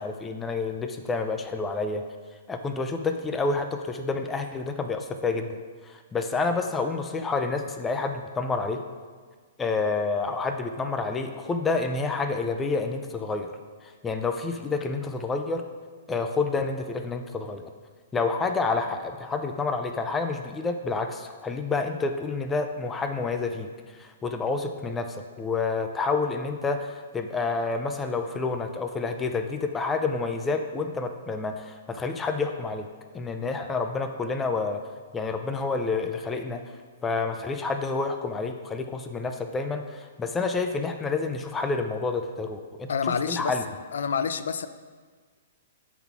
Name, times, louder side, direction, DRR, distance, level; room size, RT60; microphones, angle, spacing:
voice 1, 0.0-2.0 2.5-5.6 5.9-8.8 9.6-13.5 13.8-15.6 16.1-17.7 18.1-23.7 24.0-32.9 33.1-34.8 35.1-36.6 37.0-42.9 43.3-43.6, left 4 dB, 10° left, 6 dB, 0.4 m, -29 dB
voice 2, 42.9-43.6 43.9-44.7, left 6 dB, 80° left, 12 dB, 0.5 m, -27 dB
11.0 x 3.9 x 5.9 m, 1.5 s
hypercardioid pair, 170°, 0 cm